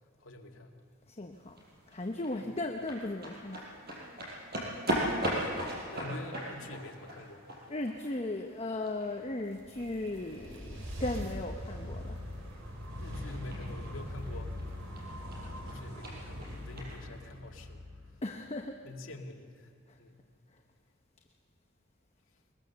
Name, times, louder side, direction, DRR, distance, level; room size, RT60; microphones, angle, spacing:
voice 1, 0.2-0.8 2.4-2.5 5.9-7.4 13.0-14.5 15.4-17.9 18.8-19.7 20.0-20.2, left 2 dB, 75° left, 2 dB, 2.1 m, -46 dB
voice 2, 1.1-4.2 7.7-12.2 18.2-18.8 19.9-20.0 20.5-20.6, left 2 dB, 30° left, 3 dB, 0.9 m, -37 dB
sound 1, 1.3-17.0, equal, 50° right, 5.6 m, -40 dB
sound 2, 9.3-18.6, left 1 dB, 80° right, 4.1 m, -42 dB
22.5 x 21.0 x 6.8 m, 2.2 s
head